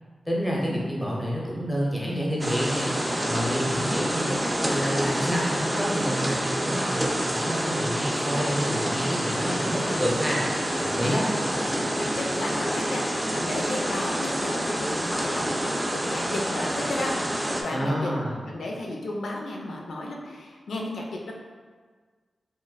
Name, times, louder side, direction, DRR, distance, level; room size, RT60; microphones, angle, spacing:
voice 1, 0.3-2.9 3.2-10.4 11.0-11.2 17.7-18.4, equal, 10° left, -4 dB, 0.7 m, -28 dB
sound 1, 2.4-17.6, right 1 dB, 15° right, 0.4 m, -27 dB
voice 2, 3.7-4.2 10.0-10.3 11.0-11.2 11.7-18.1 18.5-21.3, left 2 dB, 85° left, -1 dB, 0.4 m, -34 dB
3.8 x 2.1 x 2.3 m, 1.5 s
cardioid pair, 60°, 0 cm